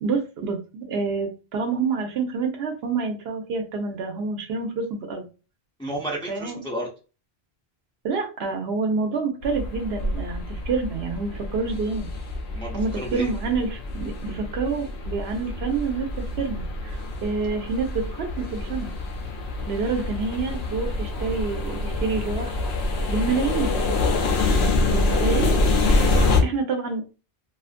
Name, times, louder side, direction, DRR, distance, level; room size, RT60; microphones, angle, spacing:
voice 1, 0.0-5.2 6.3-6.6 8.0-12.1 12.7-18.9 19.7-22.5 23.1-23.7 24.8-25.5 26.4-27.1, right 4 dB, 75° right, 4 dB, 0.8 m, -28 dB
voice 2, 5.8-6.9 12.5-13.3 25.8-26.4, right 1 dB, 10° left, -4 dB, 0.3 m, -33 dB
sound 1, 9.4-26.4, left 2 dB, 80° left, 0.8 m, -26 dB
2.4 x 2.4 x 2.4 m, 0.33 s
omnidirectional pair, 1.1 m